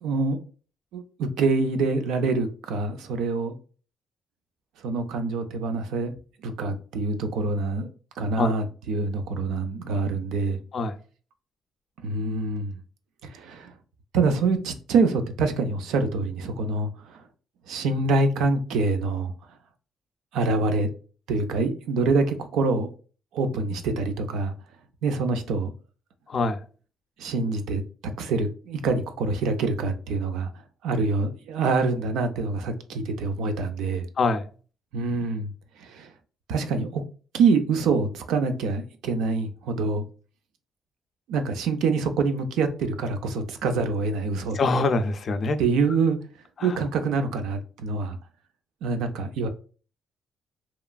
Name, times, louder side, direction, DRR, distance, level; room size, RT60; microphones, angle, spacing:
voice 1, 0.0-0.4 0.9-3.5 4.8-6.1 6.4-7.9 8.2-10.6 12.0-12.7 13.2-13.7 14.1-17.2 17.7-19.3 20.3-20.9 21.3-22.9 23.3-24.5 25.0-25.7 27.2-27.8 28.2-30.5 30.8-34.1 34.9-35.5 35.8-36.1 36.5-37.0 37.3-40.1 41.3-44.6 45.6-46.2 46.6-48.2 48.8-49.5, right 3 dB, 85° right, 0.4 m, -25 dB
voice 2, 44.5-45.6 46.6-46.7, left 3 dB, 50° left, 0.4 m, -24 dB
2.9 x 2.4 x 2.2 m
cardioid pair, 90°, 0 cm